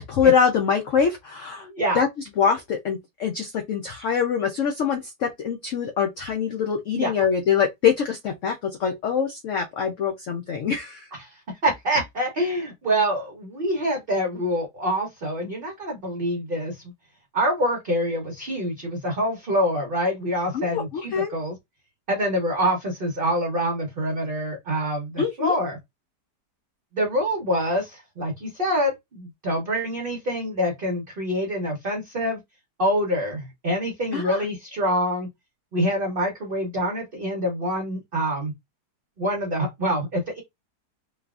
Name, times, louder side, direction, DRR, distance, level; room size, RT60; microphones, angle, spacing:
voice 1, 0.2-1.7 1.9-2.1 2.4-11.1 20.5-21.3 25.2-25.6 34.1-34.4, left 7 dB, 75° left, 0.7 m, -24 dB
voice 2, 1.6-2.0 6.9-7.1 11.1-16.8 17.3-21.6 22.1-25.8 26.9-32.4 32.8-35.3 35.7-38.5 39.2-40.4, equal, 45° right, 0.7 m, -26 dB
3.3 x 2.3 x 2.3 m
omnidirectional pair, 1.9 m